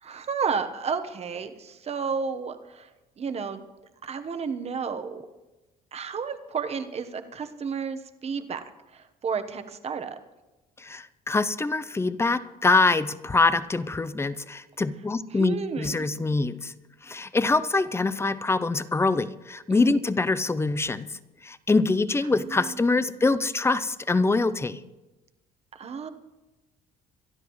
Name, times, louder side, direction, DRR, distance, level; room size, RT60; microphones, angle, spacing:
voice 1, 0.0-2.9 3.2-3.6 4.0-5.2 5.9-8.6 8.9-10.2 15.3-16.2 19.7-20.0 22.3-23.0 25.7-26.1, right 5 dB, 40° right, 8 dB, 1.1 m, -32 dB
voice 2, 10.8-16.7 17.0-21.1 21.4-24.8, left 3 dB, 15° left, 14 dB, 0.5 m, -24 dB
24.0 x 12.0 x 3.1 m, 1.1 s
cardioid pair, 110°, 17 cm